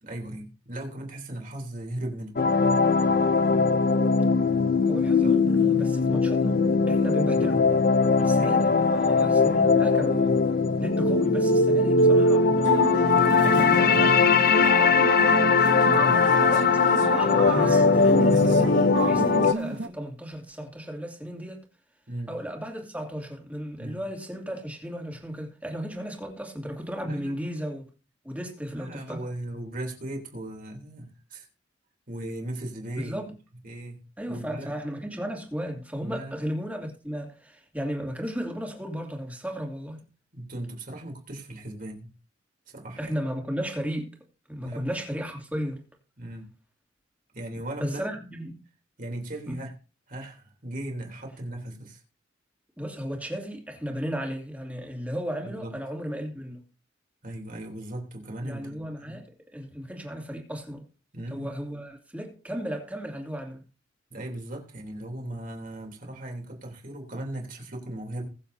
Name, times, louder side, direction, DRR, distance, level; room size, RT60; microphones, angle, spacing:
voice 1, 0.0-2.4 5.2-5.4 8.4-8.8 9.2-9.7 13.1-14.2 15.9-16.5 22.1-22.3 23.8-24.0 27.0-27.4 28.7-31.5 32.1-33.3 33.6-34.0 34.3-34.7 36.0-36.3 40.3-42.1 42.7-43.1 44.6-44.8 46.2-46.5 47.3-48.1 49.0-49.7 50.1-52.0 55.4-55.7 57.2-59.2 61.1-61.5 64.1-68.3, right 1 dB, 45° right, 3.3 m, -37 dB
sound 1, 2.4-19.5, left 4 dB, 50° left, 0.6 m, -20 dB
voice 2, 4.9-6.6 6.9-7.8 8.2-12.9 13.4-14.1 16.5-21.6 22.3-27.9 28.2-29.3 33.0-33.3 34.2-40.0 43.0-44.1 44.5-45.8 47.8-48.6 49.5-49.6 52.8-56.6 58.4-60.8 61.3-63.6, equal, 10° right, 2.5 m, -35 dB
sound 2, 12.6-19.9, right 3 dB, 75° right, 0.8 m, -32 dB
21.0 x 7.6 x 2.7 m
head